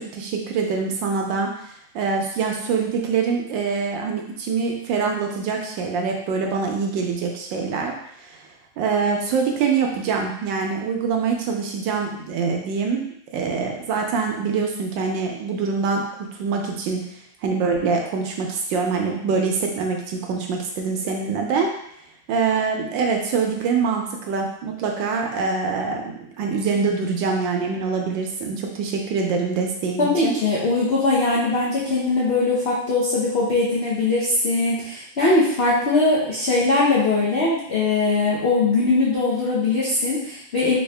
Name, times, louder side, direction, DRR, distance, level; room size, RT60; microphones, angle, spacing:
voice 1, 0.0-1.5 1.9-7.9 8.2-8.4 8.8-13.0 13.3-16.0 16.3-17.0 17.4-21.7 22.3-30.4, right 5 dB, 75° right, 2 dB, 1.2 m, -24 dB
voice 2, 30.0-40.8, left 3 dB, 80° left, -8 dB, 0.5 m, -21 dB
3.6 x 2.9 x 3.2 m, 0.71 s
omnidirectional pair, 2.2 m